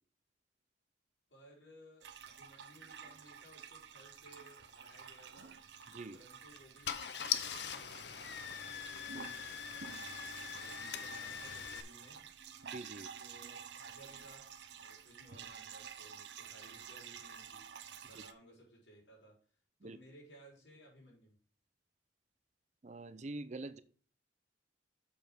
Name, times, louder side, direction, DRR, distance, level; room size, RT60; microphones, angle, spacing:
voice 1, 1.3-5.5 6.1-10.0 10.4-12.3 13.2-14.5 14.8-17.7 18.0-19.4 19.8-21.3, equal, 90° left, -2 dB, 4.5 m, -60 dB
sound 1, 2.0-18.3, right 7 dB, 75° right, 0.7 m, -51 dB
Car / Engine starting, 5.7-6.0 6.6-6.7 6.8-11.8, left 9 dB, 70° left, 0.7 m, -41 dB
voice 2, 12.7-13.1 19.8-20.0 22.8-23.8, right 2 dB, 40° right, 13 dB, 0.6 m, -45 dB
7.0 x 5.3 x 6.0 m, 0.42 s
head